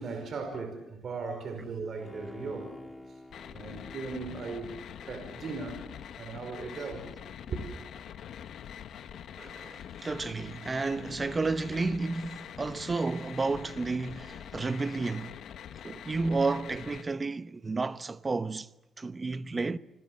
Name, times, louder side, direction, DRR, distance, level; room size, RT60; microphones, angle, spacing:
voice 1, 0.0-2.7 3.5-4.7 5.0-5.8 6.1-7.1 7.5-7.6, right 4 dB, 55° right, 5.2 m, -37 dB
Bowed string instrument, 2.0-6.6 7.0-7.1, left 2 dB, 15° left, 1.9 m, -49 dB
sound 1, 3.3-17.0, left 9 dB, 70° left, 1.5 m, -44 dB
voice 2, 9.4-15.4 15.8-18.7 19.0-19.8, right 3 dB, 25° right, 0.9 m, -31 dB
28.0 x 21.0 x 7.9 m
cardioid pair, 90°, 0 cm